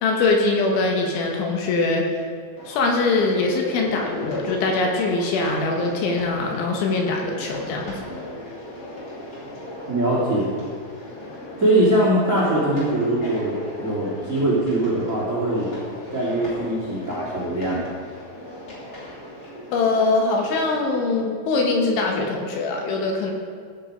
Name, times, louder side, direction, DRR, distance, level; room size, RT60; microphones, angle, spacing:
voice 1, 0.0-2.2 2.7-8.0 19.7-23.3, left 3 dB, 75° left, 1 dB, 3.4 m, -22 dB
sound 1, 2.6-21.2, left 1 dB, 30° left, 3.2 m, -37 dB
voice 2, 9.9-10.5 11.6-15.7 16.1-17.8, right 1 dB, 25° right, -7 dB, 1.6 m, -22 dB
15.5 x 6.9 x 5.1 m, 2.1 s
omnidirectional pair, 5.8 m